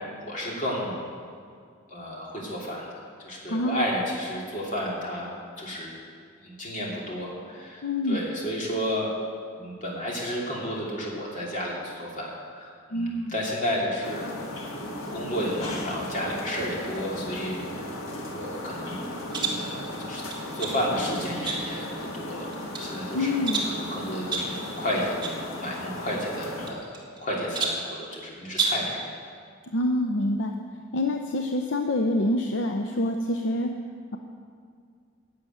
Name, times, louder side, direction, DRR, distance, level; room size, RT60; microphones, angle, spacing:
voice 1, 0.2-1.0 1.9-2.8 3.2-5.3 5.6-5.9 6.4-9.1 9.6-14.3 15.1-17.9 18.3-19.1 19.5-20.2 20.5-27.0 27.2-28.9, equal, 40° left, -4 dB, 2.8 m, -32 dB
voice 2, 3.5-3.9 7.8-8.2 12.9-13.3 23.1-23.6 29.7-30.5 30.9-33.7, left 1 dB, 65° left, 4 dB, 0.7 m, -26 dB
sound 1, 14.0-26.7, left 1 dB, 85° left, 1.7 m, -36 dB
sound 2, 19.3-19.7 20.3-20.8 21.5-21.9 22.4-22.9 23.5-23.8 24.3-24.6 25.2-25.4 25.7-25.8 26.7-27.2 27.5-27.9 28.5-28.9, right 4 dB, 20° right, 1.7 m, -30 dB
12.0 x 7.0 x 9.2 m, 2.2 s
head